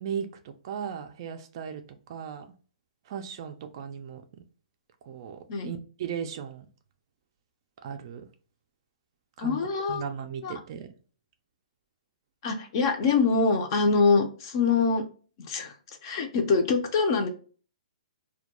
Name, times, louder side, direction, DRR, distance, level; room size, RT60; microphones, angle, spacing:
voice 1, 0.0-1.8 2.1-2.5 3.1-4.2 5.1-6.7 7.8-8.3 9.4-9.6 9.9-10.9, right 7 dB, 35° right, 7 dB, 0.3 m, -36 dB
voice 2, 9.4-10.0 10.4-10.5 12.4-15.0 15.5-15.7 16.0-17.3, left 4 dB, 35° left, 6 dB, 0.5 m, -24 dB
2.2 x 2.2 x 2.8 m, 0.39 s
hypercardioid pair, 165°, 4 cm